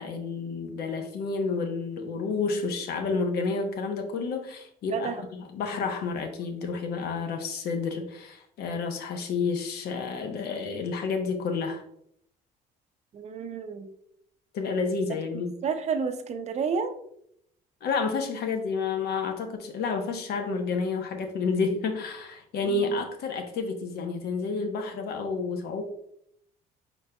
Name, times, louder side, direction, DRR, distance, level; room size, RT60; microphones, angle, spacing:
voice 1, 0.0-11.8 14.5-15.5 17.8-25.8, left 4 dB, 70° left, 5 dB, 0.9 m, -30 dB
voice 2, 4.9-5.2 13.1-13.9 15.3-16.9 22.6-23.0, right 6 dB, 40° right, 8 dB, 0.6 m, -31 dB
5.0 x 4.2 x 2.2 m, 0.71 s
cardioid pair, 110°, 17 cm